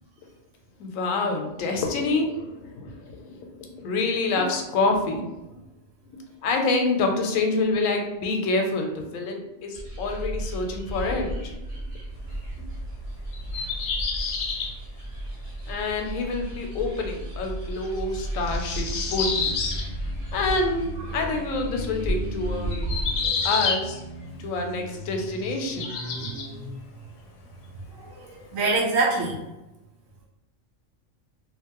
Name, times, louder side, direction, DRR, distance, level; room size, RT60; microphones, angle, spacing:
voice 1, 0.8-5.6 6.1-11.8 15.7-19.5 19.9-20.0 20.3-22.9 23.4-24.0 24.4-26.0, left 3 dB, 85° left, 3 dB, 1.0 m, -27 dB
sound 1, 9.7-23.3, right 1 dB, 45° right, 1.1 m, -33 dB
sound 2, 13.3-14.8 16.0-16.1 18.4-19.9 21.8-21.9 22.7-23.9 25.1-26.5, left 5 dB, 65° left, 0.8 m, -29 dB
sound 3, 18.8-26.7, equal, 20° right, 1.2 m, -39 dB
voice 2, 22.8-23.5 25.8-26.4 27.9-29.4, right 3 dB, 80° right, -2 dB, 1.0 m, -28 dB
2.6 x 2.5 x 2.8 m, 0.97 s
omnidirectional pair, 1.4 m